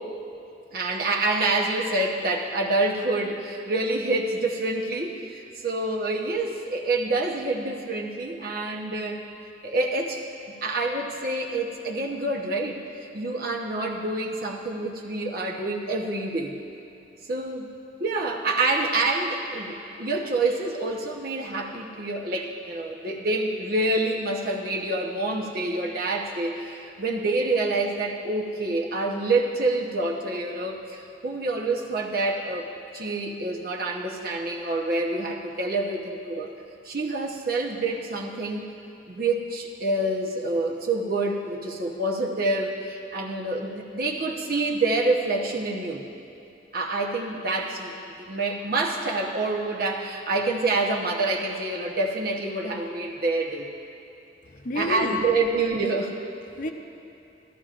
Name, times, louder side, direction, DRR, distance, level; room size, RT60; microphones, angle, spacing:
voice 1, 0.7-9.2 9.6-10.2 10.5-16.5 17.3-17.7 18.0-32.7 32.9-36.5 36.8-38.7 39.1-46.0 46.7-53.7 54.7-56.2, right 2 dB, 55° right, 0 dB, 1.0 m, -27 dB
voice 2, 54.4-55.6 56.5-56.7, left 2 dB, 45° left, 4 dB, 0.6 m, -31 dB
13.5 x 13.0 x 2.5 m, 2.8 s
head